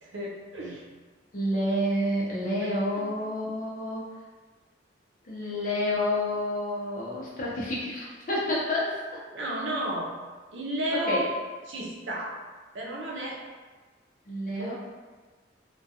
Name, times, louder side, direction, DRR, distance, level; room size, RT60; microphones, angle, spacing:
voice 1, 0.0-0.8 2.6-3.1 9.3-10.1 10.5-11.3 11.7-12.3 12.7-13.4 14.4-14.7, right 1 dB, 90° right, -3 dB, 0.5 m, -33 dB
voice 2, 1.3-4.1 5.2-9.0 10.9-11.2 14.3-14.7, left 1 dB, 45° left, -5 dB, 0.6 m, -29 dB
2.3 x 2.2 x 2.7 m, 1.3 s
head